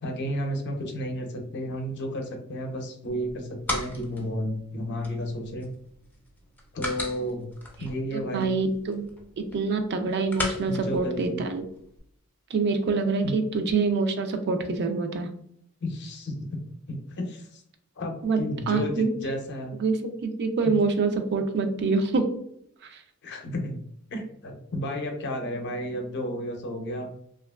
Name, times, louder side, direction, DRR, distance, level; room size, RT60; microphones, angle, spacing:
voice 1, 0.0-5.7 6.7-7.5 7.8-8.6 10.7-11.4 13.2-13.4 15.8-16.6 16.9-17.6 18.0-19.7 20.7-20.8 23.2-23.8 24.1-27.1, equal, 55° left, 3 dB, 0.6 m, -32 dB
sound 1, 3.1-12.0, left 2 dB, 10° left, 0.4 m, -39 dB
voice 2, 8.1-9.1 9.4-11.6 12.5-15.3 18.2-18.4 18.7-19.2 19.8-22.3 22.9-23.0, right 4 dB, 55° right, 6 dB, 0.4 m, -26 dB
2.8 x 2.3 x 2.2 m, 0.69 s
head